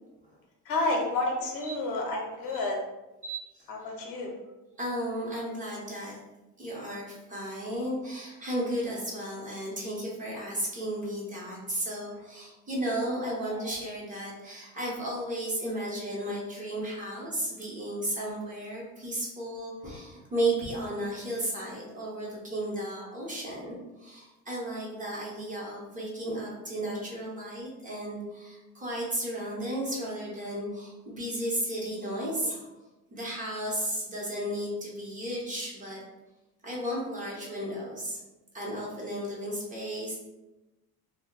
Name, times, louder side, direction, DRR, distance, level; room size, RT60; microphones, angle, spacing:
voice 1, 0.7-2.8 3.7-4.4 13.3-13.6, left 2 dB, 75° left, 1 dB, 0.8 m, -30 dB
voice 2, 3.2-3.6 4.8-6.2 6.6-32.7 33.1-36.0 36.6-38.2 38.5-40.2, right 1 dB, 20° right, -5 dB, 0.7 m, -34 dB
2.2 x 2.0 x 3.7 m, 1.0 s
cardioid pair, 145°, 36 cm